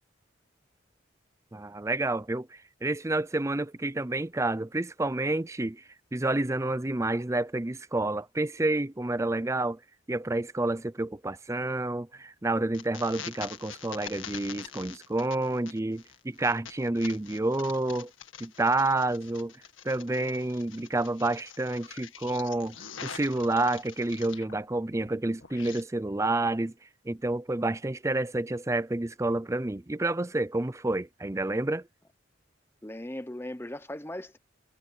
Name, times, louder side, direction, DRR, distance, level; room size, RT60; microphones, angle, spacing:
voice 1, 1.5-5.8 6.1-9.8 10.1-18.1 18.4-19.5 19.8-22.8 23.0-26.7 27.1-31.9, right 2 dB, 15° right, 0.5 m, -29 dB
sound 1, 12.7-24.6 24.9-25.8, left 8 dB, 90° left, 1.9 m, -45 dB
voice 2, 32.8-34.4, left 1 dB, 10° left, 1.0 m, -38 dB
head